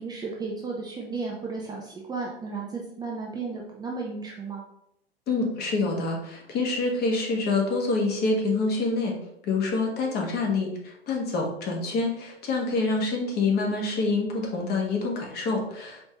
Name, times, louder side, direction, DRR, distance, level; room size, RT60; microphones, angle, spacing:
voice 1, 0.0-4.6, right 4 dB, 15° right, -2 dB, 0.5 m, -34 dB
voice 2, 5.3-9.1 9.4-16.1, left 3 dB, 30° left, 0 dB, 1.1 m, -26 dB
4.3 x 3.1 x 2.9 m, 0.78 s
figure-of-eight pair, 95°, 30 cm